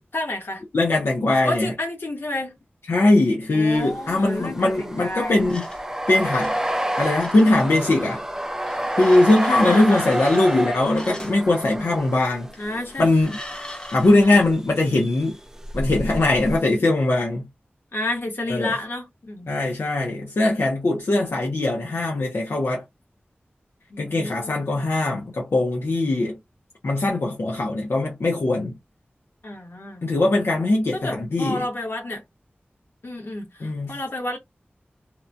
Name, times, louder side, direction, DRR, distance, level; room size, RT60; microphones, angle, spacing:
voice 1, 0.0-0.6 1.4-2.6 3.5-5.4 9.6-10.1 12.6-13.1 14.2-14.4 17.9-19.5 23.9-24.7 29.4-30.0 30.9-32.2 33.0-34.4, left 1 dB, 65° left, 1.2 m, -30 dB
voice 2, 0.7-1.7 2.9-5.7 6.1-6.6 7.0-8.2 9.0-12.5 13.0-13.4 13.9-15.4 15.7-17.5 18.5-18.7 19.5-22.8 24.0-26.4 26.8-28.7 30.0-31.6 33.6-34.0, left 2 dB, 85° left, 0.7 m, -21 dB
sound 1, 3.7-13.2 14.2-14.7 14.9-16.6, right 1 dB, 15° right, 0.4 m, -29 dB
sound 2, 5.5-8.2 8.6-11.4 12.5-14.4, left 1 dB, 20° left, 0.7 m, -40 dB
2.9 x 2.2 x 2.5 m
wide cardioid pair, 75°, 4 cm